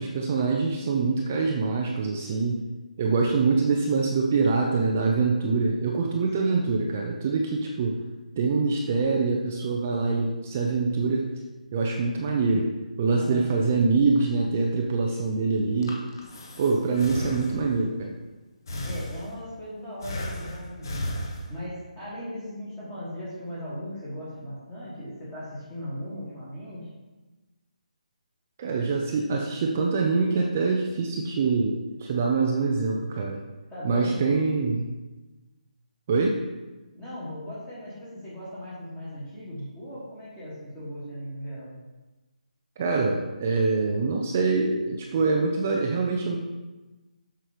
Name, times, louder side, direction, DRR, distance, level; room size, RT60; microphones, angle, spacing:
voice 1, 0.0-2.6 3.0-8.0 8.4-11.3 11.7-12.7 13.0-16.0 16.6-18.1 28.6-33.4 33.8-34.9 36.1-36.4 42.8-46.4, right 4 dB, 15° right, 0 dB, 0.4 m, -24 dB
voice 2, 6.4-6.7 13.2-13.5 18.8-21.2 21.5-26.9 33.7-34.3 36.9-41.7, equal, 5° left, -9 dB, 1.4 m, -37 dB
Breathing, 15.6-17.9 18.7-19.6 20.0-21.8, left 1 dB, 30° left, 1.0 m, -35 dB
7.7 x 5.7 x 5.0 m, 1.1 s
hypercardioid pair, 180°, 4 cm